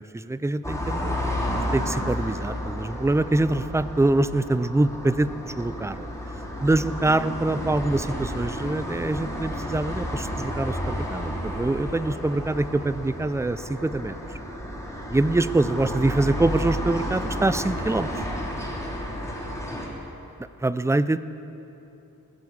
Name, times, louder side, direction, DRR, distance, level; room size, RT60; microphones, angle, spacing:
voice 1, 0.0-6.1 6.6-14.2 15.1-18.2 20.6-21.2, right 2 dB, 10° right, 14 dB, 0.3 m, -24 dB
sound 1, 0.6-19.9, equal, 10° left, 3.3 m, -31 dB
19.0 x 7.9 x 7.5 m, 2.9 s
wide cardioid pair, 100°, 37 cm